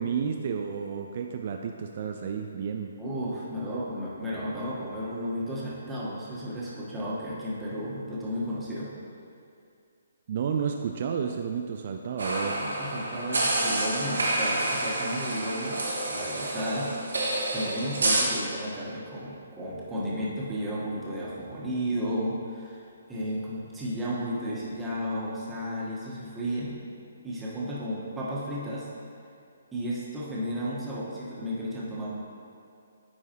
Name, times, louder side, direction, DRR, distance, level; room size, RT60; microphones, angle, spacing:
voice 1, 0.0-3.0 10.3-12.7, right 7 dB, 45° right, 3 dB, 0.3 m, -31 dB
voice 2, 3.0-8.9 12.3-15.8 16.1-17.0 17.5-26.7 27.2-28.9 29.7-32.1, equal, 10° right, -8 dB, 1.4 m, -33 dB
sound 1, 12.2-18.2, right 2 dB, 75° right, 1.3 m, -28 dB
9.5 x 4.7 x 3.0 m, 2.4 s
figure-of-eight pair, 135°, 0 cm